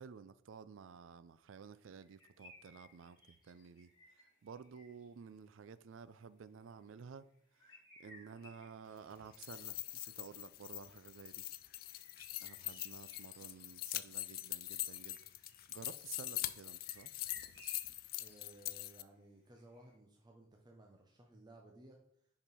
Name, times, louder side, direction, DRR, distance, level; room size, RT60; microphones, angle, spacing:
voice 1, 0.0-3.9 4.4-7.2 7.6-11.4 12.4-15.2 15.7-17.1, right 6 dB, 70° right, 0.4 m, -53 dB
sound 1, 1.9-5.2 6.8-7.0 7.3-9.9 10.8-18.4 18.7-18.8 19.6-20.0, left 1 dB, 25° left, 2.3 m, -62 dB
sound 2, 9.2-19.0, left 15 dB, 50° left, 0.3 m, -43 dB
voice 2, 18.2-22.0, right 1 dB, 20° right, 0.7 m, -59 dB
5.2 x 4.9 x 5.4 m
head